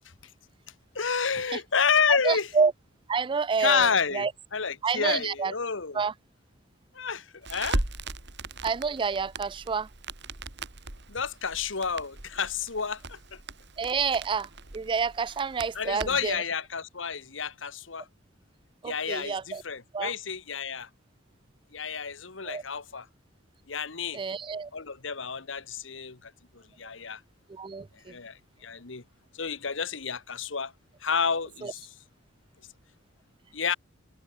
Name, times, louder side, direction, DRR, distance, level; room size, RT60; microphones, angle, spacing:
voice 1, 0.9-2.5 3.6-6.0 6.9-7.8 11.1-13.4 15.7-18.1 18.8-20.9 21.7-23.1 23.7-24.2 24.7-27.2 27.9-29.0 29.3-30.7 31.0-31.9 33.5-33.7, left 6 dB, 70° left, 1.5 m, -30 dB
voice 2, 2.2-2.7 3.1-4.3 4.8-5.5 5.9-6.1 8.6-9.9 13.8-16.4 18.8-19.6 19.9-20.1 22.5-22.6 24.1-24.7 27.5-28.1 31.6-31.7, right 5 dB, 25° right, 0.4 m, -28 dB
Crackle, 7.4-16.4, right 2 dB, 60° right, 3.0 m, -38 dB
head